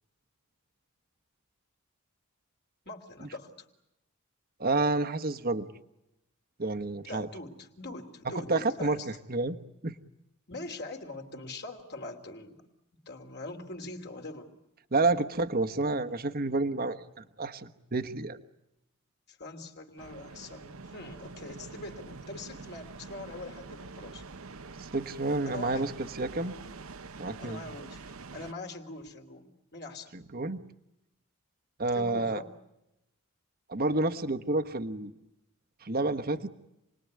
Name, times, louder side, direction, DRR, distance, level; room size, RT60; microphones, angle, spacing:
voice 1, 2.8-3.7 7.1-9.1 10.5-12.6 13.0-14.5 19.3-24.2 25.4-25.9 27.4-30.1 31.9-32.5, left 2 dB, 50° left, 4 dB, 3.1 m, -43 dB
voice 2, 4.6-5.7 6.6-7.3 8.5-9.6 9.8-9.9 14.9-17.0 17.4-18.4 24.8-26.5 27.2-27.6 30.1-30.6 31.8-32.4 33.7-35.1 35.8-36.5, right 2 dB, 40° right, 8 dB, 1.3 m, -29 dB
sound 1, 20.0-28.5, right 4 dB, 65° right, 1.0 m, -46 dB
29.0 x 20.5 x 9.6 m, 0.88 s
head